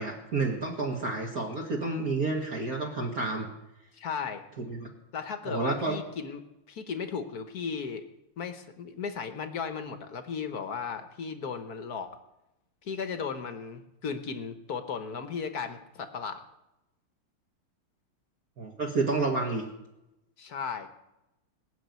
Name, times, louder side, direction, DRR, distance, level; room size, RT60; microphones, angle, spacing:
voice 1, 0.0-3.5 4.7-4.9 5.4-6.0 18.6-19.6, right 3 dB, 45° right, 0 dB, 2.1 m, -30 dB
voice 2, 3.9-4.4 5.1-6.4 6.7-8.1 8.4-12.2 12.8-16.4 20.4-20.9, left 6 dB, 50° left, 8 dB, 1.4 m, -35 dB
19.5 x 7.2 x 9.4 m, 0.91 s
omnidirectional pair, 2.4 m